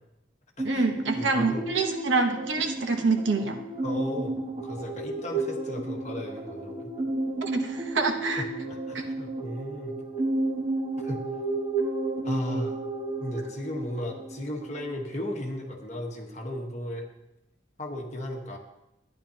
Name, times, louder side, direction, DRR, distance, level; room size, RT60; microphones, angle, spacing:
sound 1, 0.6-15.0, right 2 dB, 25° right, 1.2 m, -32 dB
voice 1, 0.6-3.6 7.4-8.4 8.9-9.0, right 4 dB, 85° right, 5 dB, 1.1 m, -26 dB
voice 2, 1.1-1.6 3.8-6.9 8.4-9.9 11.0-11.2 12.2-12.8 13.2-17.1 17.8-18.6, left 1 dB, 40° left, 1 dB, 1.3 m, -35 dB
12.5 x 9.8 x 2.9 m, 0.87 s
head